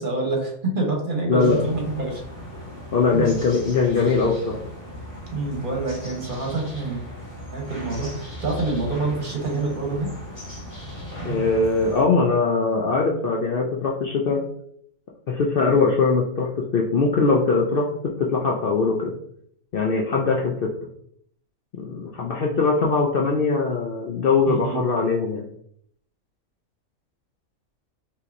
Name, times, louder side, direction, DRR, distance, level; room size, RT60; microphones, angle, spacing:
voice 1, 0.0-2.2 3.1-3.3 5.3-7.0 7.5-10.1 11.2-11.4 24.5-24.8, right 2 dB, 40° right, 0 dB, 1.1 m, -26 dB
voice 2, 1.3-1.6 2.9-4.6 11.2-14.4 15.3-17.9 18.2-19.1 19.7-20.7 21.8-25.4, left 4 dB, 60° left, -1 dB, 0.6 m, -21 dB
sound 1, 1.4-12.0, left 1 dB, 15° left, 1.6 m, -37 dB
5.7 x 2.9 x 2.5 m, 0.67 s
omnidirectional pair, 1.4 m